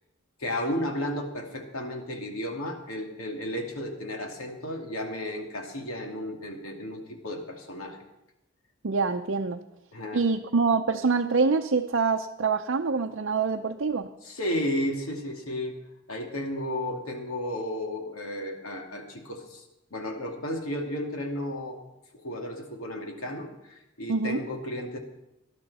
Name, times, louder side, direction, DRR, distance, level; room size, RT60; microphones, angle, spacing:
voice 1, 0.4-8.0 9.9-10.2 14.2-15.8 16.1-19.6 19.9-21.8 22.2-25.0, left 1 dB, 90° left, 2 dB, 2.5 m, -33 dB
voice 2, 8.8-9.6 10.1-14.1 24.1-24.4, right 4 dB, 60° right, 3 dB, 0.6 m, -25 dB
19.5 x 12.0 x 4.2 m, 0.90 s
head